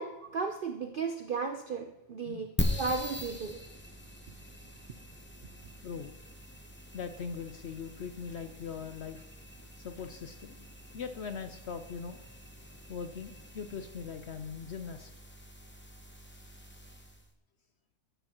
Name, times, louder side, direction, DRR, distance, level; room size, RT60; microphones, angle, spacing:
voice 1, 0.0-3.6, right 4 dB, 60° right, 6 dB, 0.5 m, -35 dB
sound 1, 2.6-17.3, left 1 dB, 10° left, 0.5 m, -42 dB
voice 2, 5.8-6.1 6.9-9.2 9.8-10.7 10.9-12.2 12.9-15.1, left 6 dB, 60° left, 8 dB, 0.7 m, -40 dB
13.5 x 11.0 x 3.0 m, 0.92 s
omnidirectional pair, 1.6 m